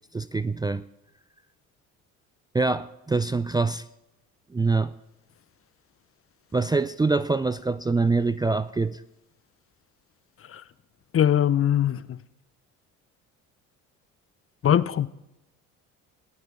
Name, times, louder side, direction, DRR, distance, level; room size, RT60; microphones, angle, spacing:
voice 1, 0.1-0.8 2.5-3.8 4.5-4.9 6.5-9.0, right 3 dB, 10° right, 0.5 m, -24 dB
voice 2, 11.1-12.2 14.6-15.1, left 10 dB, 35° left, 0.7 m, -21 dB
21.0 x 15.5 x 3.7 m
hypercardioid pair, 60°, 39 cm